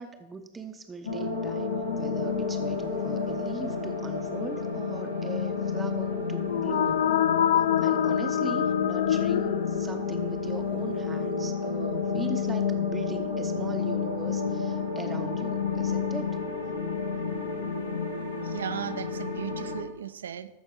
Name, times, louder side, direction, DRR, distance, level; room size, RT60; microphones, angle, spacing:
voice 1, 0.0-7.0 7.8-16.4, right 4 dB, 15° right, 6 dB, 0.7 m, -40 dB
sound 1, 1.0-19.8, left 5 dB, 80° left, 1.4 m, -30 dB
sound 2, 6.4-10.2, left 10 dB, 65° left, 0.3 m, -25 dB
voice 2, 18.4-20.5, right 9 dB, 65° right, 13 dB, 0.5 m, -36 dB
14.0 x 5.2 x 4.8 m, 1.0 s
figure-of-eight pair, 90°, 0 cm